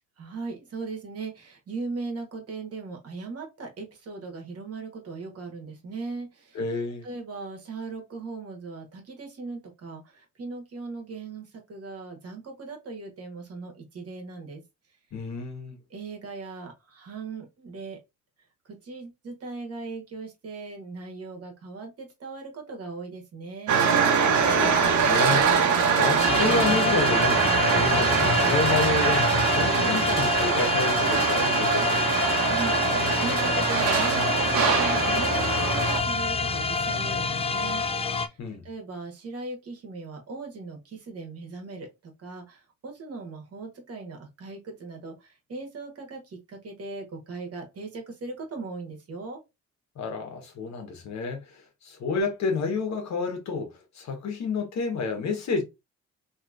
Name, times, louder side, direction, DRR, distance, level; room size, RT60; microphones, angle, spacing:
voice 1, 0.2-6.6 7.0-14.6 15.9-18.0 18.8-23.8 32.4-38.3 38.6-49.4, right 3 dB, 50° right, 1.5 m, -38 dB
voice 2, 6.5-7.1 15.1-15.8 24.4-25.5 25.9-32.1 38.4-38.6 50.0-51.4 51.8-55.6, left 4 dB, 65° left, 1.3 m, -30 dB
sound 1, 23.7-36.0, right 6 dB, 75° right, 1.0 m, -23 dB
sound 2, 26.2-38.3, left 4 dB, 20° left, 0.4 m, -27 dB
3.1 x 3.0 x 2.5 m
cardioid pair, 90°, 30 cm